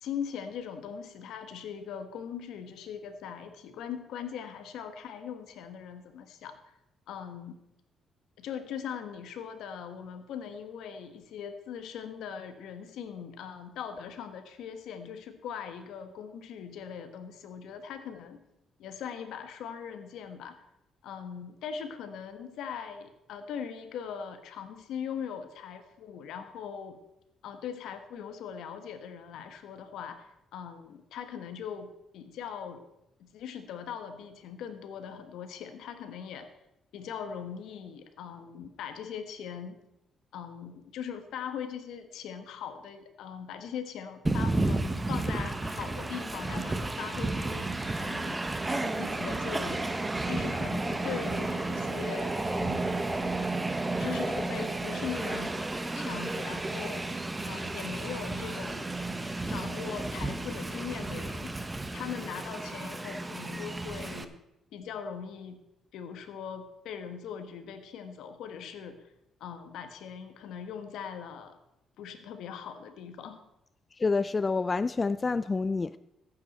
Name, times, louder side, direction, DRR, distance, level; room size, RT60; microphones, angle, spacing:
voice 1, 0.0-6.6 7.1-7.6 8.4-18.4 18.8-20.6 21.0-27.0 27.4-32.8 33.2-36.5 36.9-39.8 40.3-49.9 50.3-53.0 54.0-57.0 57.4-58.9 59.5-61.5 61.9-64.4 64.7-65.6 65.9-69.0 69.4-71.6 72.0-73.4, left 7 dB, 85° left, 1.4 m, -40 dB
Train, 44.3-64.3, right 2 dB, 15° right, 0.9 m, -32 dB
voice 2, 74.0-76.0, left 4 dB, 30° left, 0.3 m, -28 dB
15.0 x 8.6 x 4.3 m
cardioid pair, 90°, 0 cm